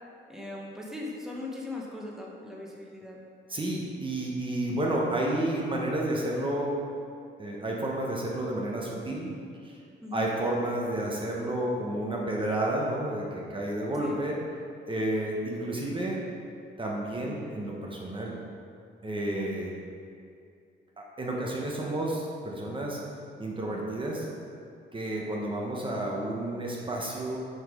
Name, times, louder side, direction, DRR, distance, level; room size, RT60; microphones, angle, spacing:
voice 1, 0.3-3.2 10.0-10.3 14.0-14.2, left 2 dB, ahead, -3 dB, 1.1 m, -39 dB
voice 2, 3.5-6.7 7.4-9.3 9.6-9.8 10.1-14.4 14.9-16.2 16.8-18.4 19.0-19.7 21.2-23.0 23.4-24.3 24.9-27.4, right 1 dB, 25° right, -2 dB, 1.1 m, -31 dB
5.8 x 5.3 x 5.0 m, 2.4 s
cardioid pair, 90°, 20 cm